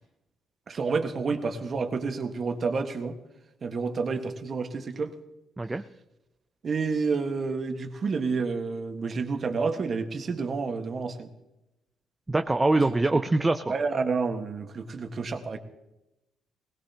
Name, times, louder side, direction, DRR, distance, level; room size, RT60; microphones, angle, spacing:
voice 1, 0.7-3.2 3.6-5.1 6.6-11.3 12.8-13.2 13.7-15.6, right 4 dB, 45° right, 5 dB, 1.5 m, -29 dB
voice 2, 12.3-13.6, right 2 dB, 20° right, 7 dB, 0.6 m, -23 dB
20.0 x 17.0 x 2.9 m, 0.94 s
cardioid pair, 90°, 0 cm